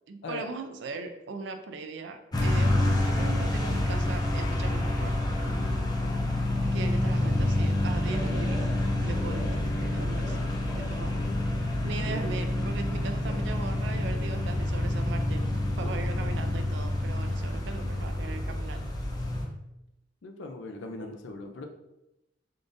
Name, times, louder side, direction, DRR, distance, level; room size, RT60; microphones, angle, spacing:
voice 1, 0.1-5.2 6.7-8.6 9.0-9.5 9.9-10.4 10.7-11.1 11.8-18.9 21.0-21.1, right 4 dB, 70° right, 8 dB, 0.4 m, -39 dB
sound 1, 2.3-19.4, left 1 dB, 20° left, 0.5 m, -28 dB
voice 2, 5.4-5.8 15.8-16.2 20.2-21.6, left 2 dB, 75° left, 5 dB, 0.4 m, -40 dB
Male speech man speaking, 8.1-11.3 11.6-15.0, equal, 10° right, 0.8 m, -45 dB
3.6 x 2.5 x 2.5 m, 0.91 s
head